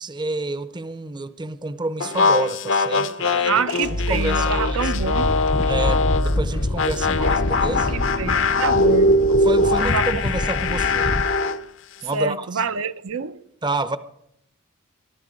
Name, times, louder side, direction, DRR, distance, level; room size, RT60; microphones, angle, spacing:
voice 1, 0.0-3.5 3.9-4.9 5.6-8.0 9.3-11.2 12.0-12.6 13.6-14.0, right 2 dB, 20° right, 0.6 m, -29 dB
sound 1, 2.0-6.3 6.8-11.6, left 2 dB, 60° left, 0.8 m, -21 dB
voice 2, 3.5-5.3 7.9-9.2 9.8-10.2 10.6-10.8 12.1-13.4, right 5 dB, 75° right, 0.7 m, -27 dB
sound 2, 3.7-10.3, equal, 85° left, 1.2 m, -29 dB
sound 3, 5.0-11.2, left 2 dB, 30° left, 0.5 m, -28 dB
22.0 x 12.5 x 5.2 m
head